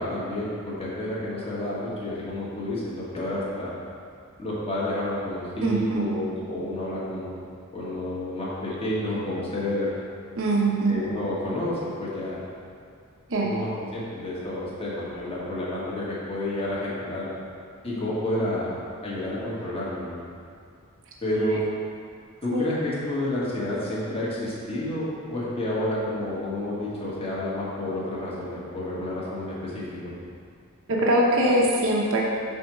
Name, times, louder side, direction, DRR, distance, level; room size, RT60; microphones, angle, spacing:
voice 1, 0.0-3.7 4.4-7.3 7.7-9.9 10.9-12.4 13.4-17.3 17.8-18.7 19.0-20.2 21.2-21.6 22.4-30.1, left 1 dB, 25° left, -7 dB, 1.5 m, -30 dB
voice 2, 5.6-6.1 10.3-11.0 13.3-13.5 22.5-22.6 30.9-32.2, right 1 dB, 60° right, -3 dB, 0.9 m, -22 dB
6.2 x 4.3 x 6.1 m, 2.3 s
head